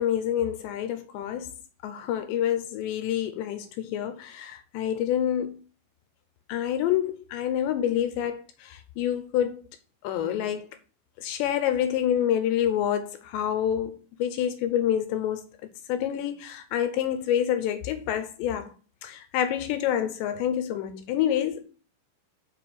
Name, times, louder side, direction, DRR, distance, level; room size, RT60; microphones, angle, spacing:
voice 1, 0.0-1.5 1.8-5.6 6.5-9.6 10.0-10.7 11.2-15.5 15.9-18.7 19.0-21.6, left 10 dB, 75° left, 2.8 m, -27 dB
7.2 x 5.5 x 6.7 m
omnidirectional pair, 5.6 m